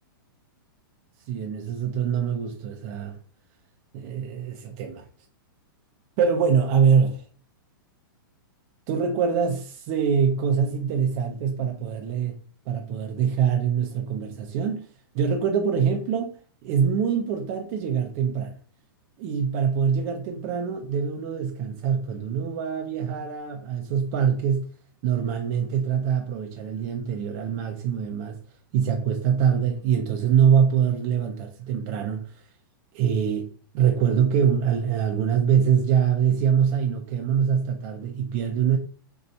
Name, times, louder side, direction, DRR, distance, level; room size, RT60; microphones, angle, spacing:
voice 1, 1.3-3.2 3.9-5.1 6.2-7.2 8.9-12.4 12.7-14.9 15.1-16.3 16.6-18.5 19.2-24.7 25.0-28.4 28.7-32.2 32.9-38.8, right 7 dB, 35° right, 0.5 m, -24 dB
2.7 x 2.3 x 4.0 m
hypercardioid pair, 150°, 12 cm